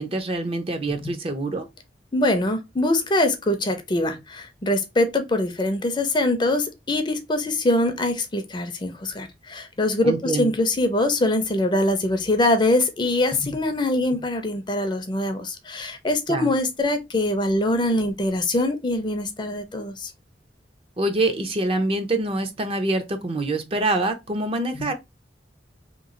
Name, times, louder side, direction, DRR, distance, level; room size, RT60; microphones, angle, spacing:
voice 1, 0.0-1.7 10.0-10.5 16.3-16.5 21.0-24.9, right 2 dB, 35° right, 0.6 m, -25 dB
voice 2, 2.1-20.1 24.7-24.9, left 1 dB, 25° left, 0.5 m, -23 dB
3.0 x 2.3 x 3.7 m
head